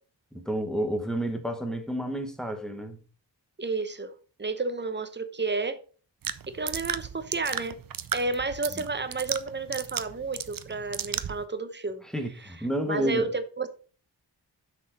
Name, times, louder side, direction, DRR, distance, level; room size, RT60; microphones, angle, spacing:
voice 1, 0.3-3.0 8.7-8.9 12.1-13.3, right 1 dB, ahead, 1.3 m, -30 dB
voice 2, 3.6-4.1 4.4-5.8 6.5-7.8 8.1-12.0 12.9-13.7, right 3 dB, 25° right, 0.9 m, -31 dB
sound 1, 6.2-11.4, right 8 dB, 50° right, 0.6 m, -35 dB
7.3 x 6.3 x 4.1 m
wide cardioid pair, 125°, 42 cm